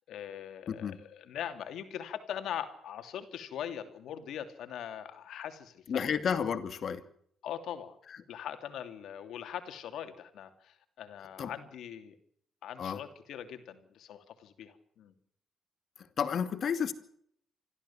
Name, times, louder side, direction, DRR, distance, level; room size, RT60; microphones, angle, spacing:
voice 1, 0.1-6.0 7.4-8.0 8.3-12.1 12.6-15.1, left 9 dB, 75° left, 8 dB, 2.8 m, -41 dB
voice 2, 0.7-1.0 5.9-7.0 11.4-11.5 12.8-13.0 16.2-16.9, left 7 dB, 55° left, 11 dB, 2.5 m, -31 dB
26.0 x 14.5 x 7.3 m, 0.66 s
cardioid pair, 90°, 0 cm